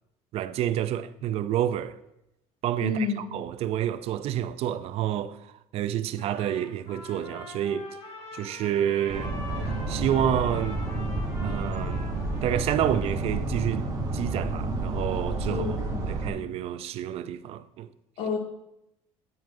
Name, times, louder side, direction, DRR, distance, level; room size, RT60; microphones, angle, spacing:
voice 1, 0.3-2.0 2.6-7.9 8.3-9.3 9.9-10.8 11.4-12.1 12.4-13.9 14.1-15.8 16.1-17.9, right 11 dB, 50° right, 0.4 m, -29 dB
voice 2, 2.8-3.2 15.5-16.4 18.2-18.4, left 4 dB, 85° left, 2.1 m, -30 dB
Trumpet, 6.2-13.3, left 2 dB, 40° left, 3.1 m, -43 dB
sound 1, 9.1-16.3, right 2 dB, 25° right, 1.6 m, -30 dB
9.4 x 9.0 x 2.7 m
cardioid pair, 145°, 13 cm